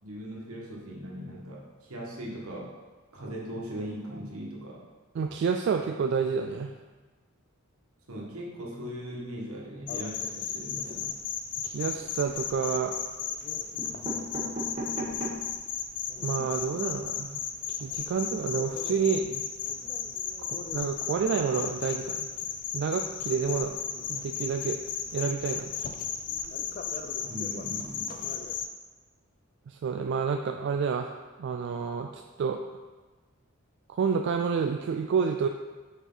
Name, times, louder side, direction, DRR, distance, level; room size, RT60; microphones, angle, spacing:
voice 1, 0.0-2.7 3.1-4.8 8.1-11.1 27.2-28.3, equal, 80° right, -3 dB, 1.4 m, -39 dB
voice 2, 5.1-6.7 11.6-12.9 16.2-17.4 17.8-19.4 20.4-22.3 22.7-23.8 24.1-24.8 25.1-25.7 29.7-31.1 31.4-32.6 33.9-35.5, right 6 dB, 55° right, 4 dB, 0.3 m, -29 dB
sound 1, 9.9-28.7, left 7 dB, 40° left, 0.4 m, -35 dB
sound 2, 12.0-12.7 13.4-13.5 13.8-15.6 16.1-16.2 16.4-16.5 16.8-16.9, equal, 30° right, 1.1 m, -37 dB
6.6 x 4.5 x 3.9 m, 1.3 s
head